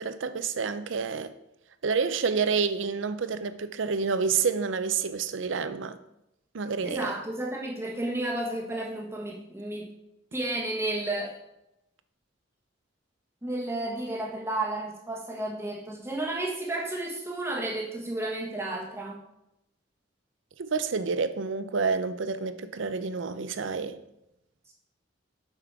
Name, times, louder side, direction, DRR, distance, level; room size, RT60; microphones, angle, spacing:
voice 1, 0.0-1.3 1.8-6.0 6.5-7.1 20.6-24.0, right 5 dB, 75° right, 0.6 m, -28 dB
voice 2, 6.8-9.9 10.3-11.4 13.4-19.2, right 2 dB, 15° right, 1.3 m, -32 dB
6.7 x 6.0 x 4.7 m
head